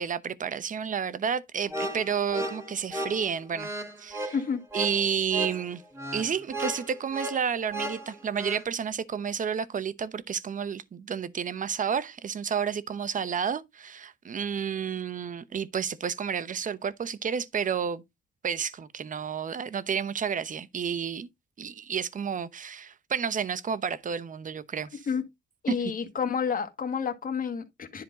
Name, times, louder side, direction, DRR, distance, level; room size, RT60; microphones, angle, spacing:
voice 1, 0.0-3.7 4.0-4.3 4.7-5.8 6.1-18.0 18.4-21.3 21.6-25.0 25.7-25.8, right 7 dB, 40° right, 0.9 m, -31 dB
sound 1, 1.7-8.6, right 1 dB, 15° right, 2.2 m, -35 dB
voice 2, 24.9-25.2 25.6-28.0, left 6 dB, 45° left, 1.8 m, -30 dB
10.5 x 4.4 x 4.1 m
cardioid pair, 90°, 20 cm